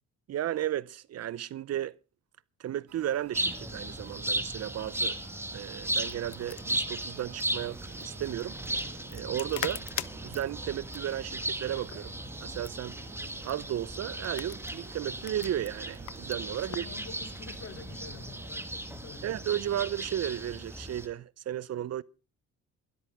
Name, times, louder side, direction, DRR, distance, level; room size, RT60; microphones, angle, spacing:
voice 1, 0.3-2.0 2.6-5.2 5.5-8.6 9.1-9.8 10.2-12.1 12.4-13.0 13.4-16.8 19.2-22.0, right 11 dB, 55° right, 0.6 m, -34 dB
sound 1, 2.9-18.5, right 10 dB, 85° right, 2.5 m, -54 dB
sound 2, 3.3-21.1, right 1 dB, 10° right, 1.7 m, -36 dB
sound 3, 5.8-17.0, left 13 dB, 70° left, 0.9 m, -44 dB
voice 2, 16.5-19.4, left 5 dB, 50° left, 2.9 m, -47 dB
20.5 x 13.0 x 3.5 m
cardioid pair, 90°, 30 cm